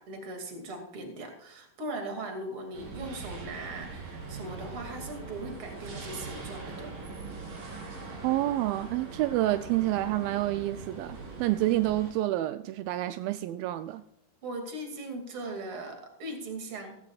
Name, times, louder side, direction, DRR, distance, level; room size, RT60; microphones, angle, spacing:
voice 1, 0.0-6.9 14.4-17.0, right 2 dB, 40° right, 4 dB, 2.7 m, -39 dB
sound 1, 2.7-12.1, right 3 dB, 60° right, 4.6 m, -42 dB
voice 2, 8.2-14.0, right 15 dB, 85° right, 11 dB, 2.0 m, -28 dB
16.0 x 14.5 x 2.4 m, 0.82 s
omnidirectional pair, 4.7 m